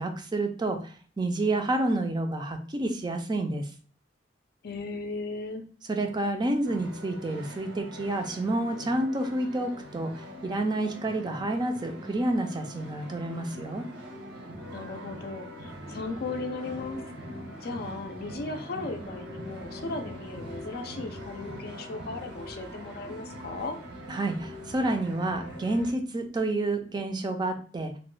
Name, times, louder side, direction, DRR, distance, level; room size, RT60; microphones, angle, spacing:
voice 1, 0.0-3.6 5.9-13.9 24.1-28.0, right 2 dB, 25° right, 5 dB, 0.4 m, -29 dB
voice 2, 4.6-5.6 14.7-17.0 17.6-23.8, left 3 dB, 60° left, 6 dB, 0.4 m, -36 dB
sound 1, 6.6-25.9, equal, 90° right, 0.9 m, -42 dB
3.0 x 2.1 x 3.0 m, 0.41 s
head